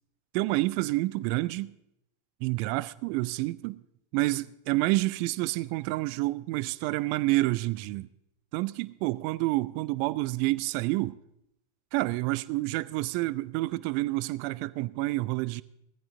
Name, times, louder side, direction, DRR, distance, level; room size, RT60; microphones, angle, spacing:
voice 1, 0.3-1.7 2.4-3.8 4.1-8.1 8.5-11.2 11.9-15.6, right 20 dB, 45° right, 0.4 m, -28 dB
17.0 x 14.5 x 3.7 m
figure-of-eight pair, 90°, 0 cm